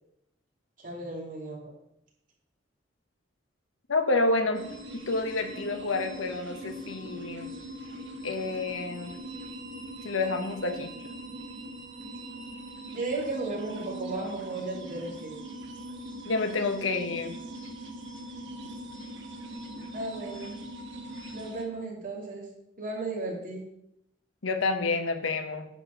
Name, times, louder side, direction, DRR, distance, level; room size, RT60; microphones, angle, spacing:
voice 1, 0.8-1.7 12.9-15.4 19.9-20.5 21.3-22.5 22.8-23.7, right 2 dB, 40° right, -2 dB, 2.8 m, -35 dB
voice 2, 3.9-4.7 5.1-7.5 8.2-9.2 10.0-10.9 16.2-17.4 24.4-25.7, left 3 dB, 85° left, 7 dB, 1.2 m, -29 dB
sound 1, 4.5-21.6, right 1 dB, 65° right, 1.3 m, -41 dB
9.7 x 4.4 x 6.5 m, 0.78 s
head